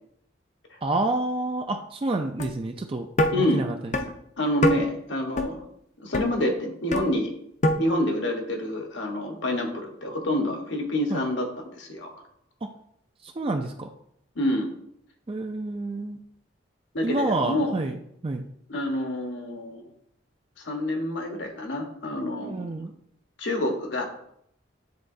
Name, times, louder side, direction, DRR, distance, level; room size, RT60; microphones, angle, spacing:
voice 1, 0.8-3.1 3.4-4.0 11.1-11.2 12.6-12.7 13.2-13.9 15.3-16.2 17.0-18.5 22.4-22.9, right 2 dB, 30° right, 4 dB, 0.4 m, -28 dB
sound 1, 2.4-2.5 3.2-3.3 3.9-4.0 4.6-4.8 5.4-5.5 6.1-6.3 6.9-7.1 7.6-7.7, left 1 dB, 35° left, 0.5 m, -22 dB
voice 2, 3.3-3.6 4.0-4.1 4.4-5.7 6.0-7.3 7.8-12.1 14.3-14.7 16.9-17.7 18.7-19.8 20.6-22.8 23.4-24.0, left 1 dB, 75° left, 3 dB, 1.2 m, -27 dB
9.5 x 4.0 x 2.7 m, 0.71 s
head